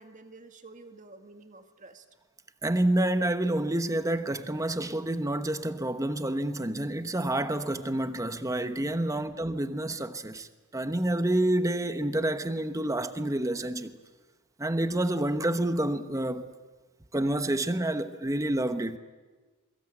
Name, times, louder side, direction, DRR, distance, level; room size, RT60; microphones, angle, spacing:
voice 1, 0.0-2.1 9.1-9.4, right 2 dB, 35° right, 1.9 m, -50 dB
voice 2, 2.6-14.0 14.6-16.5 17.1-19.0, right 1 dB, 15° right, 1.0 m, -28 dB
28.5 x 22.5 x 8.8 m
head